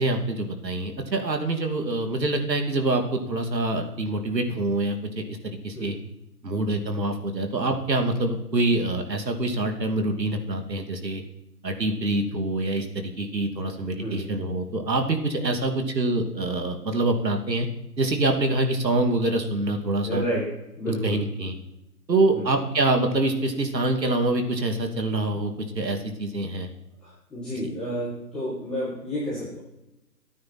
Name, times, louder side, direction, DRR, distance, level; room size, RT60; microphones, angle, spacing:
voice 1, 0.0-5.9 6.4-11.2 11.6-17.7 18.0-20.2 21.0-21.5 22.1-26.7, right 2 dB, 80° right, 4 dB, 2.9 m, -25 dB
voice 2, 13.8-14.3 20.0-21.2 22.3-22.5 27.0-29.6, equal, ahead, -15 dB, 1.7 m, -31 dB
25.0 x 9.4 x 4.4 m, 0.90 s
hypercardioid pair, 175°, 49 cm